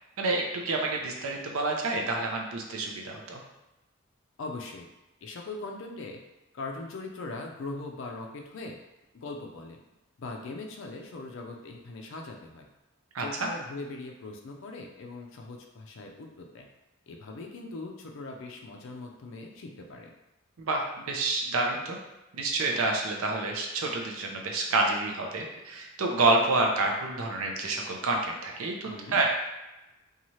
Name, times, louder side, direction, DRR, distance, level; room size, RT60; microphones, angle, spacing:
voice 1, 0.2-3.4 13.1-13.5 20.6-22.0 22.3-29.3, right 2 dB, 75° right, 1 dB, 0.5 m, -28 dB
voice 2, 4.4-4.9 5.2-6.2 6.5-8.8 9.1-9.8 10.2-12.7 13.2-16.7 17.1-20.1 28.8-29.2, left 2 dB, 60° left, 2 dB, 0.4 m, -40 dB
2.7 x 2.3 x 3.0 m, 1.0 s
head